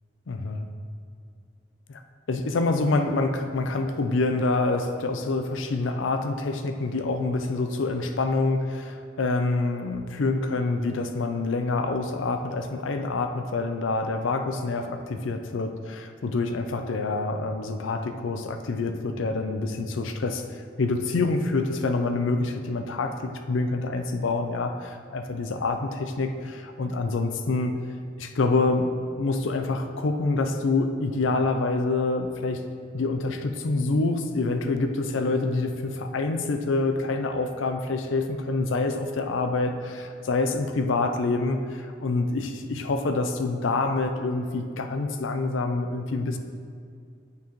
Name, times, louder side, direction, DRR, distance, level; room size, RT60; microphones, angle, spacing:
voice 1, 0.3-0.7 1.9-2.0 2.3-27.7 28.2-28.9 29.2-32.6 32.9-46.4, left 3 dB, 75° left, 7 dB, 0.5 m, -26 dB
8.4 x 4.5 x 3.0 m, 2.2 s
head